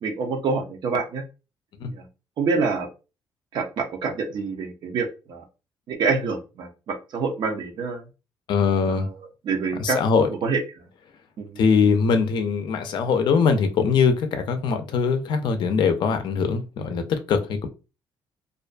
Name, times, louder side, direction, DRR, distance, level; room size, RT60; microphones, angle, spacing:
voice 1, 0.0-1.2 1.8-2.1 2.4-2.9 3.5-5.4 5.9-8.0 8.9-10.6 11.4-11.6, right 4 dB, 60° right, 0.6 m, -27 dB
voice 2, 8.5-9.1 9.8-10.3 11.6-17.7, left 5 dB, 60° left, 0.5 m, -22 dB
2.5 x 2.2 x 2.4 m
cardioid pair, 140°, 9 cm